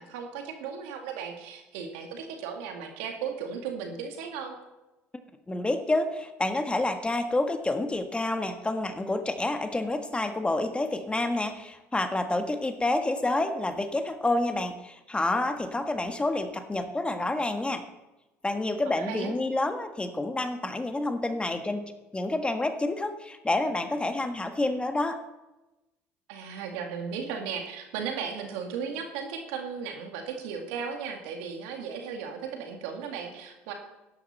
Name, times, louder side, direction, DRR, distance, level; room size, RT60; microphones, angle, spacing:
voice 1, 0.0-4.6 18.8-19.3 26.3-33.7, right 6 dB, 80° right, 4 dB, 2.0 m, -36 dB
voice 2, 5.5-17.8 18.4-25.2, left 2 dB, 15° left, 7 dB, 1.5 m, -28 dB
12.5 x 11.0 x 4.3 m, 1.0 s
hypercardioid pair, 70°, 7 cm